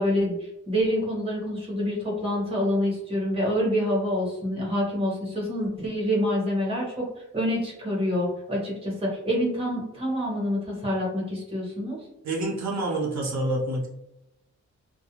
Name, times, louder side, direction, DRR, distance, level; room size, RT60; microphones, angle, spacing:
voice 1, 0.0-12.0, equal, 20° right, -3 dB, 0.9 m, -27 dB
voice 2, 12.2-13.9, right 2 dB, 70° right, -1 dB, 0.6 m, -27 dB
2.4 x 2.1 x 2.8 m, 0.85 s
wide cardioid pair, 165°, 29 cm